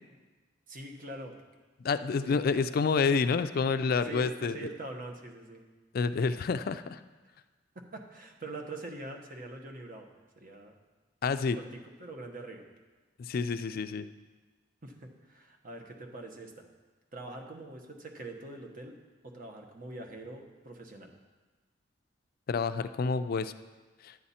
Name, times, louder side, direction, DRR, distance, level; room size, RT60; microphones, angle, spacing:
voice 1, 0.7-1.4 2.2-2.4 3.9-5.6 7.7-10.1 10.4-10.7 11.5-12.7 14.8-16.7 17.1-21.1, right 2 dB, 50° right, 3 dB, 1.2 m, -44 dB
voice 2, 1.8-4.6 5.9-7.0 11.2-11.6 13.3-14.1 22.5-23.5 24.0-24.1, left 5 dB, 55° left, 12 dB, 0.4 m, -28 dB
11.0 x 8.7 x 4.2 m, 1.3 s
head